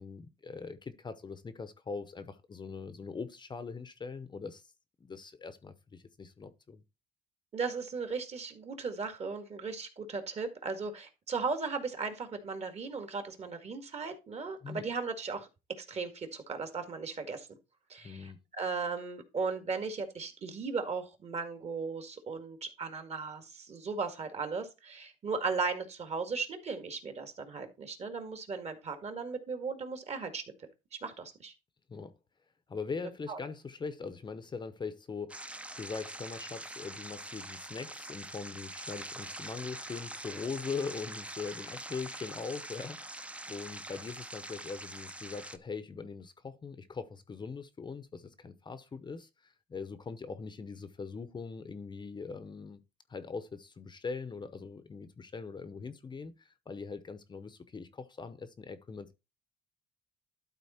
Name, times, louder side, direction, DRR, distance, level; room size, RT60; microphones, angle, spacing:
voice 1, 0.0-4.7 5.0-6.8 14.6-14.9 18.0-18.4 31.9-32.1 32.7-52.8 53.1-59.1, left 5 dB, 25° left, 0.8 m, -41 dB
voice 2, 7.5-15.5 15.8-17.5 17.9-30.4 31.0-31.5 33.3-33.4, right 4 dB, 40° right, 1.9 m, -37 dB
sound 1, 35.3-45.6, right 1 dB, 5° right, 0.6 m, -44 dB
12.0 x 4.1 x 4.2 m
cardioid pair, 110°, 17 cm